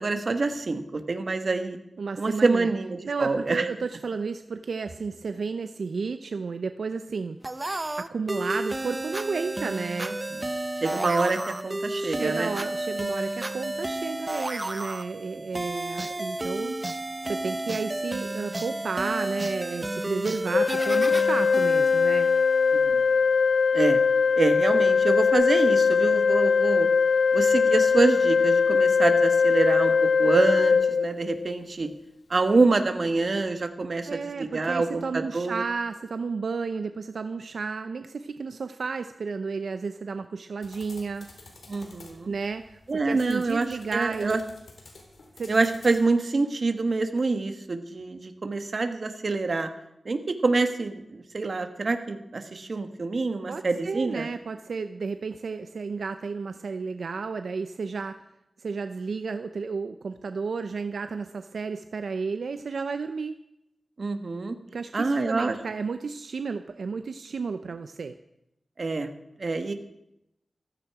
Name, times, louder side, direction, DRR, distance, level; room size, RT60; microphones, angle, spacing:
voice 1, 0.0-1.8 2.2-3.7 10.3-10.4 10.8-12.5 15.5-15.6 22.7-23.0 23.7-24.0 24.4-26.9 27.3-31.9 32.3-35.6 41.7-42.3 42.9-44.4 45.5-49.7 50.0-54.3 64.0-64.6 64.9-65.5 68.8-69.1 69.4-69.7, right 3 dB, 55° right, 7 dB, 1.5 m, -26 dB
voice 2, 2.0-2.7 3.1-7.4 8.0-10.2 12.0-16.8 17.2-22.3 34.1-41.3 42.3-42.8 43.0-44.4 45.4-45.5 53.5-58.2 58.6-63.4 64.7-68.1, right 4 dB, 85° right, 9 dB, 0.6 m, -32 dB
sound 1, 7.4-22.9, right 2 dB, 25° right, 0.7 m, -32 dB
Organ, 20.5-31.6, left 5 dB, 60° left, 0.4 m, -21 dB
sound 2, 40.6-46.0, left 2 dB, 80° left, 3.7 m, -50 dB
15.0 x 14.5 x 4.9 m, 0.83 s
wide cardioid pair, 110°, 0 cm